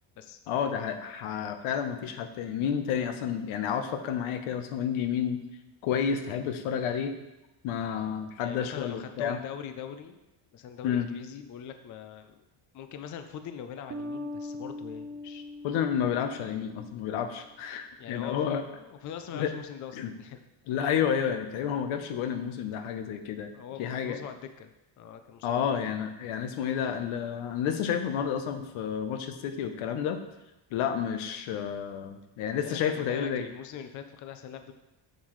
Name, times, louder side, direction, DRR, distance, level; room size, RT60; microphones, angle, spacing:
voice 1, 0.5-5.4 5.8-7.2 7.6-9.4 10.8-11.1 15.6-18.6 19.3-19.5 20.0-20.1 20.7-23.5 23.8-24.2 25.4-30.2 30.7-33.4, left 8 dB, 85° left, 8 dB, 0.9 m, -30 dB
voice 2, 8.4-10.2 10.5-12.4 12.7-15.4 18.0-20.4 23.5-24.7 25.0-25.6 32.6-34.7, left 8 dB, 40° left, 8 dB, 0.5 m, -42 dB
sound 1, 13.9-17.2, left 2 dB, 30° right, 0.4 m, -41 dB
7.3 x 7.2 x 3.1 m, 0.96 s
cardioid pair, 155°, 47 cm